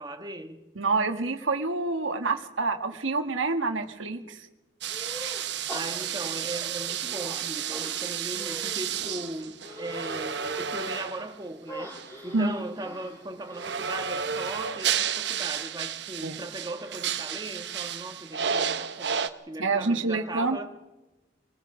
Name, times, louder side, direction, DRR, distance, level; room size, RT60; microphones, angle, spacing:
voice 1, 0.0-0.6 4.2-4.3 5.7-11.9 12.2-19.2 19.5-20.7, right 2 dB, 20° right, 1.5 m, -38 dB
voice 2, 0.8-4.5 12.3-12.6 16.2-16.4 19.6-20.6, right 3 dB, 85° right, 1.7 m, -27 dB
sound 1, 4.8-11.4 11.9-12.1 13.5-19.3, right 8 dB, 60° right, 1.1 m, -32 dB
sound 2, 4.9-5.4 5.7-7.4 7.7-10.8 11.7-15.4, equal, 15° left, 7.3 m, -43 dB
26.0 x 20.5 x 5.0 m
head